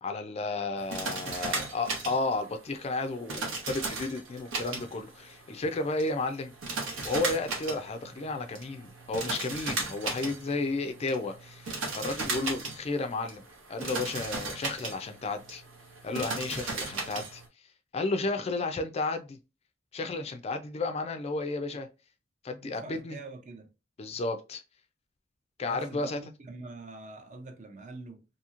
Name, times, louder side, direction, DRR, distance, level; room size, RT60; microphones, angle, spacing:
voice 1, 0.0-6.5 7.0-15.6 16.0-17.4 17.9-19.4 19.9-21.9 22.4-23.2 24.0-24.6 25.6-26.2, left 3 dB, 30° left, 0.4 m, -32 dB
sound 1, 0.8-17.5, right 3 dB, 80° right, 1.0 m, -37 dB
voice 2, 1.2-1.7 22.6-23.7 25.6-28.2, right 3 dB, 40° right, 0.5 m, -45 dB
2.9 x 2.7 x 2.4 m
head